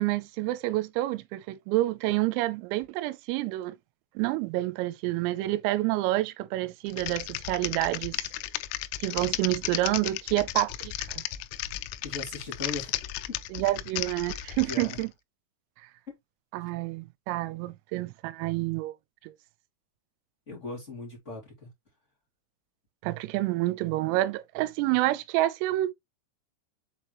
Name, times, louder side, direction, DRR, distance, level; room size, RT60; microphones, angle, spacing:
voice 1, 0.0-3.8 4.2-8.2 9.0-11.2 13.5-15.1 16.5-18.9 19.2-19.3 23.0-25.9, right 17 dB, 85° right, 3.3 m, -28 dB
Typing, 6.9-15.0, left 15 dB, 85° left, 3.2 m, -34 dB
voice 2, 12.0-13.3 14.6-15.0 20.5-21.7, left 3 dB, 40° left, 1.0 m, -39 dB
7.1 x 4.7 x 3.0 m
omnidirectional pair, 6.0 m